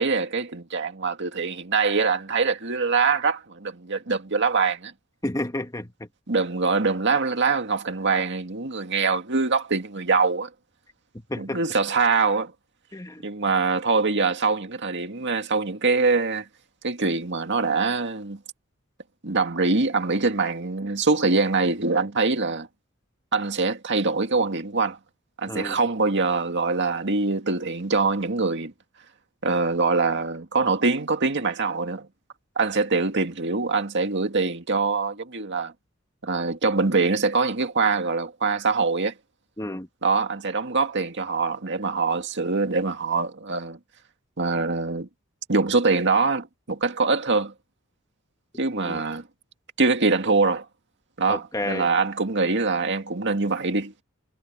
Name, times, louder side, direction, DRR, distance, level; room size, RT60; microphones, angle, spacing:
voice 1, 0.0-4.9 6.3-10.5 11.4-12.5 13.2-16.5 16.8-18.4 19.2-22.7 23.3-25.0 25.4-28.7 29.4-32.1 32.6-35.7 36.2-39.1 40.0-43.8 44.4-45.1 45.5-47.5 48.6-49.2 49.8-50.7 51.2-53.9, right 4 dB, 60° right, 2.1 m, -24 dB
voice 2, 5.2-5.9 11.3-11.6 12.9-13.2 25.5-25.8 39.6-39.9 48.7-49.0 51.3-51.9, left 1 dB, 15° left, 1.7 m, -31 dB
head